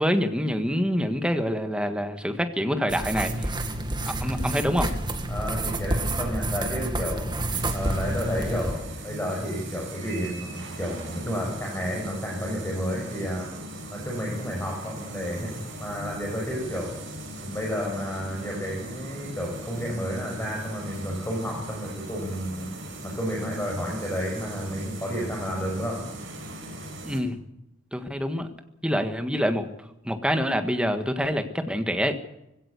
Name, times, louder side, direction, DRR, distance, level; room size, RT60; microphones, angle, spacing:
voice 1, 0.0-3.5 4.2-4.9 27.0-27.4 27.9-28.5 28.8-29.7 30.0-32.1, equal, 5° right, 7 dB, 1.6 m, -26 dB
sound 1, 2.9-8.7, right 1 dB, 20° right, 1.9 m, -29 dB
voice 2, 5.3-13.5 13.9-15.5 15.8-16.9 17.4-22.7 23.0-26.0, equal, 10° left, -2 dB, 5.8 m, -31 dB
sound 2, 7.5-27.2, right 1 dB, 60° right, 6.4 m, -39 dB
20.5 x 17.0 x 8.3 m, 0.86 s
head